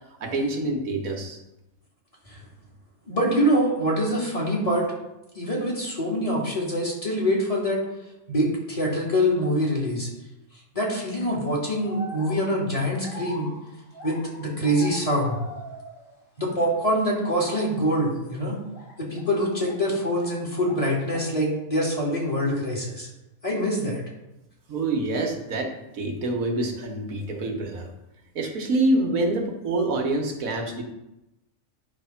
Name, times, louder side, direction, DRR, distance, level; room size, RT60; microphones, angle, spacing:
voice 1, 0.2-1.4 24.7-27.9 28.3-30.8, right 2 dB, 90° right, 1 dB, 1.6 m, -26 dB
voice 2, 3.1-4.9 5.3-7.8 8.3-10.1 10.7-13.5 14.0-15.4 16.4-18.6 19.0-23.1 23.4-24.0, equal, 25° left, -4 dB, 2.1 m, -25 dB
sound 1, 11.0-11.2 11.8-16.2 16.5-17.2 17.7-17.9 18.7-20.4 20.6-21.4, left 1 dB, 65° left, 2.0 m, -42 dB
9.7 x 3.5 x 5.7 m, 0.92 s
omnidirectional pair, 1.4 m